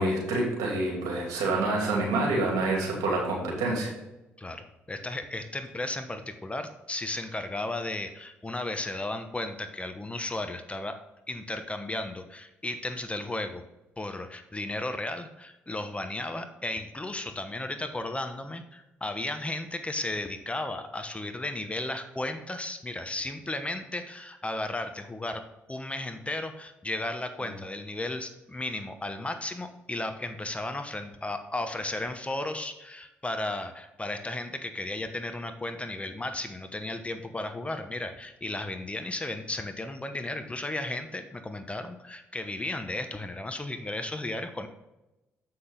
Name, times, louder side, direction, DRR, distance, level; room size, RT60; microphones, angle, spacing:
voice 1, 0.0-3.9, right 2 dB, 70° right, -2 dB, 2.7 m, -27 dB
voice 2, 4.4-11.0 11.3-13.6 14.0-25.4 25.7-44.7, left 2 dB, 20° left, 8 dB, 1.0 m, -34 dB
7.6 x 6.1 x 3.9 m, 0.96 s
hypercardioid pair, 45°, 6 cm